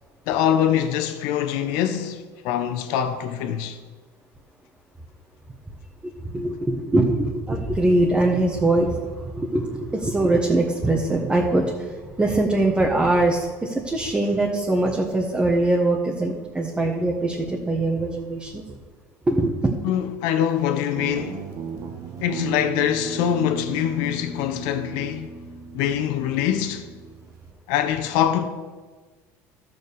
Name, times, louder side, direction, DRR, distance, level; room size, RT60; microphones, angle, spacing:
voice 1, 0.3-3.8 19.8-21.5 22.2-25.3 25.7-26.9 27.7-28.5, left 10 dB, 75° left, 1.3 m, -24 dB
voice 2, 6.0-18.8 19.2-19.7, right 2 dB, 15° right, 1.5 m, -22 dB
Guitar, 21.0-27.5, right 4 dB, 50° right, 1.6 m, -35 dB
12.5 x 6.9 x 7.1 m
supercardioid pair, 105°, 7 cm